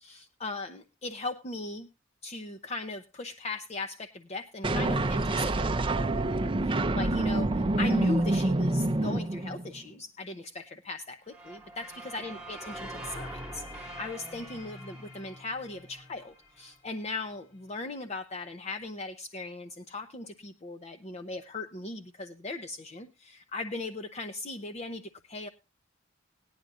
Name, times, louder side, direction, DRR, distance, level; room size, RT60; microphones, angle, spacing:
voice 1, 0.0-1.9 2.2-25.5, left 2 dB, 30° left, 7 dB, 0.7 m, -38 dB
sound 1, 4.6-9.8, right 2 dB, 25° right, 0.6 m, -27 dB
sound 2, 11.3-16.3, right 2 dB, 5° right, 2.3 m, -44 dB
sound 3, 13.0-17.8, left 3 dB, 60° left, 6.0 m, -52 dB
19.0 x 10.5 x 2.5 m, 0.27 s
head